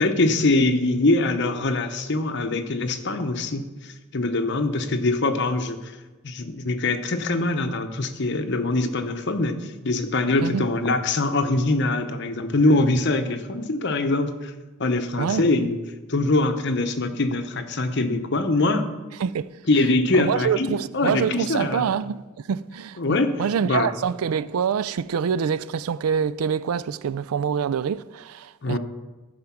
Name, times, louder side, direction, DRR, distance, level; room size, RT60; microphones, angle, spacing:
voice 1, 0.0-5.9 6.2-14.5 14.8-15.8 16.1-18.9 19.7-21.9 23.0-23.3 23.6-23.9 28.6-28.8, left 2 dB, 55° left, 0.8 m, -23 dB
voice 2, 19.2-19.6 20.1-22.2 22.5-28.8, right 7 dB, 90° right, 0.4 m, -25 dB
14.0 x 5.1 x 5.9 m
head